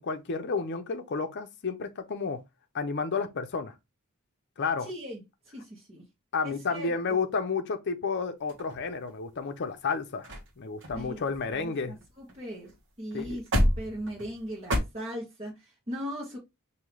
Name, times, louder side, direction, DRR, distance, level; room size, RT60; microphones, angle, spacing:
voice 1, 0.0-2.4 2.7-3.7 4.6-4.9 6.3-10.3 10.6-11.9 13.1-13.4, left 4 dB, 55° left, 0.6 m, -31 dB
voice 2, 4.8-5.2 5.5-6.0 6.4-7.2 10.9-11.2 11.5-12.7 13.0-16.4, equal, 30° right, 1.5 m, -39 dB
sound 1, 8.5-9.3 9.9-10.0 10.2-10.5 10.8-12.4 12.7-12.8 13.1-14.8, equal, 60° right, 1.3 m, -30 dB
5.4 x 2.8 x 3.1 m
head